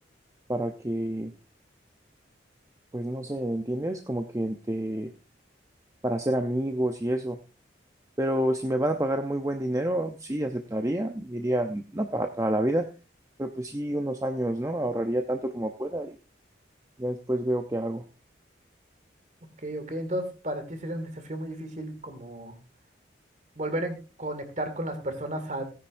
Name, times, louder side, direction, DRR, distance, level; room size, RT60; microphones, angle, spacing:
voice 1, 0.5-1.3 2.9-5.1 6.0-7.4 8.2-12.9 13.4-16.2 17.0-18.1, right 1 dB, 15° right, 5 dB, 0.6 m, -28 dB
voice 2, 19.6-22.6 23.6-25.6, right 1 dB, 40° right, 8 dB, 2.2 m, -33 dB
17.0 x 10.0 x 2.6 m, 0.33 s
head